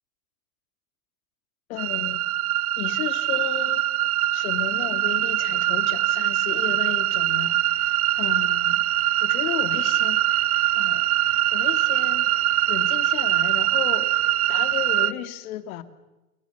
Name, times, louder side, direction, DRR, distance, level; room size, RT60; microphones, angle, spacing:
voice 1, 1.7-2.2 2.8-3.8 4.3-8.9 9.2-12.3 12.7-14.1 14.5-15.8, left 12 dB, 65° left, 2.5 m, -34 dB
sound 1, 1.8-15.1, right 14 dB, 75° right, 1.4 m, -23 dB
28.0 x 21.5 x 7.1 m
hypercardioid pair, 120°, 45 cm